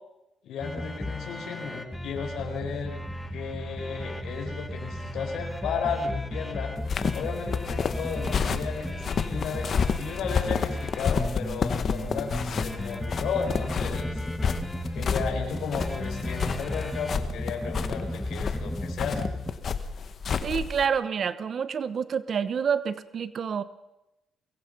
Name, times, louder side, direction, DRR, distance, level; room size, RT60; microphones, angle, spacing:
voice 1, 0.4-3.0 3.3-6.7 7.1-14.2 14.9-19.2, left 5 dB, 75° left, 1 dB, 4.7 m, -34 dB
sound 1, 0.6-19.5, left 1 dB, 5° left, 2.2 m, -34 dB
sound 2, 6.8-20.9, left 6 dB, 50° left, 1.6 m, -30 dB
voice 2, 20.4-23.6, right 7 dB, 50° right, 14 dB, 1.1 m, -28 dB
23.5 x 22.0 x 5.5 m, 0.93 s
cardioid pair, 90°, 0 cm